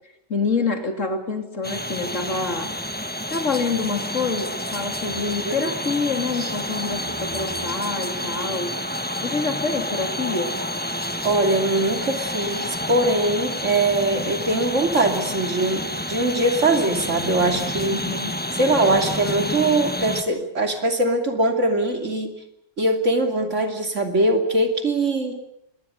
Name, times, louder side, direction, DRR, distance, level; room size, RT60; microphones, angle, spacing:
voice 1, 0.3-2.8 3.3-8.8 9.2-10.6 17.9-18.4, left 4 dB, 85° left, 6 dB, 3.3 m, -27 dB
sound 1, 1.6-20.2, left 1 dB, 10° left, 1.5 m, -29 dB
voice 2, 5.2-5.7 6.4-6.5 11.2-18.0 18.5-22.3 22.8-25.4, right 2 dB, 80° right, 5 dB, 3.2 m, -22 dB
25.0 x 20.5 x 8.1 m, 0.79 s
omnidirectional pair, 1.3 m